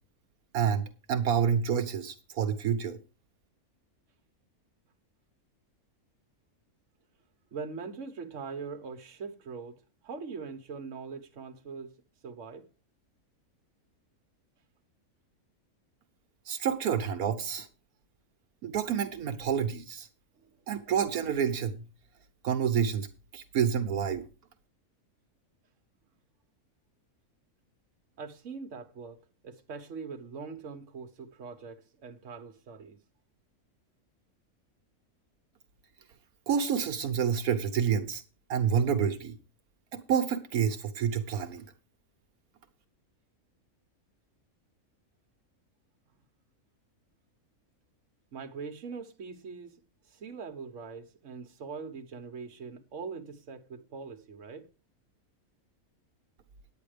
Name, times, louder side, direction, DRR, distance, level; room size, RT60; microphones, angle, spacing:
voice 1, 0.5-0.8 1.1-3.0 16.5-17.7 18.6-20.1 20.7-21.8 22.4-23.1 23.3-24.2 36.5-38.2 38.5-39.3 39.9-41.6, right 7 dB, 80° right, 1.4 m, -28 dB
voice 2, 7.5-12.0 12.2-12.7 20.4-20.5 28.2-33.0 48.3-54.7, right 5 dB, 60° right, 1.4 m, -42 dB
9.5 x 9.0 x 5.0 m
omnidirectional pair, 1.5 m